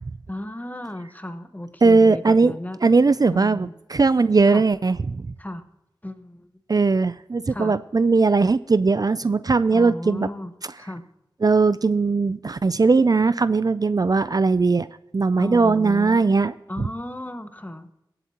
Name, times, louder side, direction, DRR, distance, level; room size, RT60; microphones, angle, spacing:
voice 1, 0.3-2.9 3.3-3.7 4.4-4.6 5.4-5.6 6.0-6.5 7.5-7.8 9.7-10.5 10.8-11.0 15.4-16.3 16.7-17.9, left 1 dB, 20° left, 8 dB, 1.2 m, -34 dB
voice 2, 1.8-2.5 2.8-5.3 6.7-10.3 11.4-14.9 15.1-16.5, right 4 dB, 50° right, 15 dB, 0.4 m, -19 dB
24.0 x 8.0 x 2.9 m, 0.90 s
wide cardioid pair, 55°, 9 cm